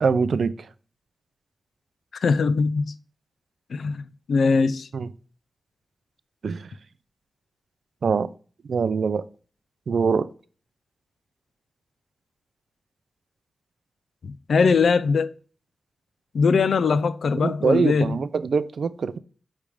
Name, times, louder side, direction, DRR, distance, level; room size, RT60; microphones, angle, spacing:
voice 1, 0.0-0.7 4.9-5.1 6.4-6.7 8.0-8.3 8.7-9.2 9.9-10.3 17.4-19.2, right 5 dB, 70° right, 0.4 m, -23 dB
voice 2, 2.2-2.9 3.7-4.0 4.3-4.9 14.2-15.3 16.3-18.2, left 5 dB, 75° left, 0.4 m, -21 dB
8.4 x 3.2 x 5.0 m
wide cardioid pair, 120°, 0 cm